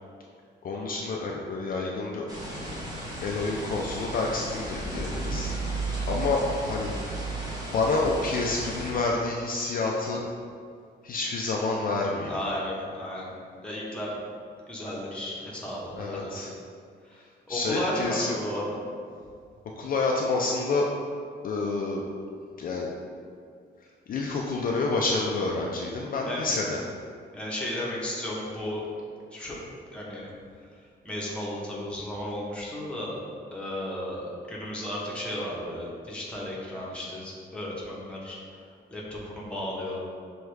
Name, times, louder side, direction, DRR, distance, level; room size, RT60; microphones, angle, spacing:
voice 1, 0.6-2.3 3.2-5.6 6.1-6.4 6.7-7.3 7.7-10.2 11.0-12.4 16.0-16.5 17.5-18.2 19.8-20.9 21.4-22.0 22.6-22.9 24.1-26.8, left 3 dB, 50° left, -1 dB, 0.4 m, -28 dB
sound 1, 2.3-8.9, right 2 dB, 20° right, 0.9 m, -34 dB
voice 2, 12.3-13.3 13.6-14.2 14.7-16.4 17.0-18.8 26.3-26.5 27.3-28.8 29.3-29.6 29.9-30.3 30.6-33.1 33.5-38.4 38.9-40.0, left 1 dB, 5° left, -6 dB, 0.8 m, -34 dB
6.1 x 2.3 x 3.2 m, 2.2 s
cardioid pair, 150°, 19 cm